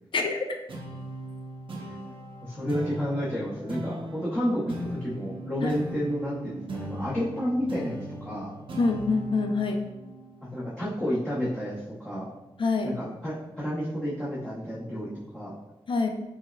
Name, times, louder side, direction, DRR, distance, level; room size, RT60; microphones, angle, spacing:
voice 1, 0.1-0.4 5.6-5.7 8.8-9.9 12.6-13.0 15.9-16.1, left 3 dB, 55° left, 4 dB, 0.4 m, -25 dB
sound 1, 0.7-11.5, right 1 dB, 60° right, 0.6 m, -39 dB
voice 2, 2.4-8.6 10.5-12.3 12.8-15.6, equal, 10° left, -8 dB, 0.7 m, -31 dB
4.5 x 2.1 x 2.2 m, 1.0 s
cardioid pair, 70°, 10 cm